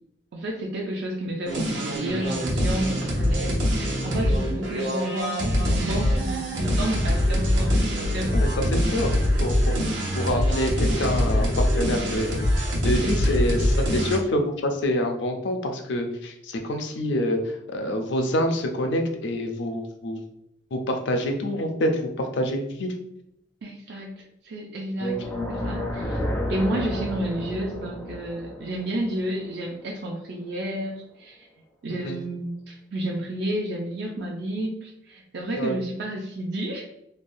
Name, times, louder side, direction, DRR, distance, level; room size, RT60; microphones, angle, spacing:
voice 1, 0.3-9.0 9.8-9.9 23.6-25.2 25.5-26.2 26.5-31.5 31.8-36.9, right 1 dB, 60° right, 0 dB, 0.4 m, -31 dB
sound 1, 1.5-14.2, equal, 75° right, 0.8 m, -24 dB
voice 2, 8.3-9.1 9.4-17.4 17.7-20.2 20.7-22.9 25.0-25.2 32.0-32.2 35.6-35.8, left 1 dB, 70° left, 4 dB, 0.4 m, -27 dB
sound 2, 25.0-30.1, left 1 dB, 10° left, 0.4 m, -32 dB
3.3 x 2.2 x 2.6 m, 0.80 s
head